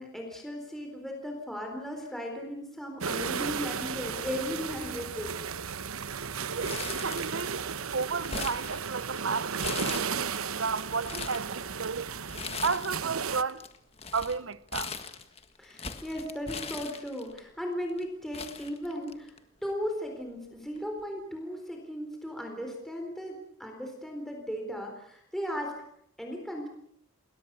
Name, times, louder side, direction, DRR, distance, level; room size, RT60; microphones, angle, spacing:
voice 1, 0.0-5.4 15.6-19.3 19.6-25.8 26.2-26.7, equal, ahead, 4.0 m, -36 dB
sound 1, 3.0-13.4, right 6 dB, 90° right, 1.0 m, -34 dB
voice 2, 6.5-7.6 7.9-12.1 12.6-13.6 14.1-15.0, right 5 dB, 70° right, 0.9 m, -33 dB
Crumpling crinkling, 6.6-7.6 7.9-9.2 9.6-10.4 10.9-11.5 12.3-13.1 13.3-17.4 18.0-18.1 18.3-19.4 19.7-19.8 20.8-21.0, left 5 dB, 30° left, 1.6 m, -39 dB
29.5 x 22.0 x 6.9 m
head